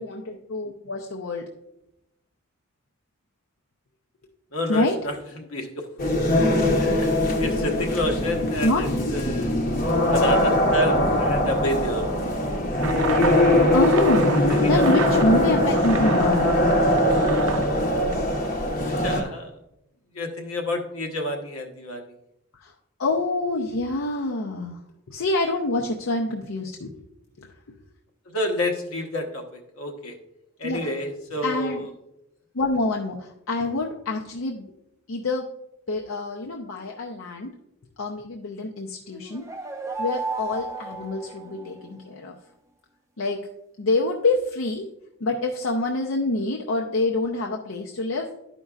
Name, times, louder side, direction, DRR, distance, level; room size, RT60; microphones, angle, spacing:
voice 1, 0.0-1.4 4.7-5.0 8.6-8.8 13.7-14.3 14.7-16.4 22.6-22.7 23.0-24.8 25.1-26.9 27.4-27.5 30.6-30.8 31.4-31.9 32.5-34.7 35.1-35.5 35.9-37.5 38.0-39.5 40.0-42.3 43.2-43.5 43.8-44.8 45.2-48.4, left 2 dB, 70° left, 0 dB, 0.6 m, -26 dB
voice 2, 4.5-5.8 6.8-7.1 7.4-9.5 10.1-12.1 14.5-14.8 19.0-19.5 20.1-22.0 28.3-30.2 30.6-31.8, left 1 dB, 90° left, 3 dB, 1.1 m, -29 dB
sound 1, 6.0-19.2, left 1 dB, 40° left, 0.9 m, -21 dB
sound 2, 12.8-18.6, right 6 dB, 80° right, 0.5 m, -32 dB
sound 3, 39.1-42.0, right 3 dB, 15° right, 0.4 m, -33 dB
12.0 x 5.3 x 2.4 m, 0.83 s
head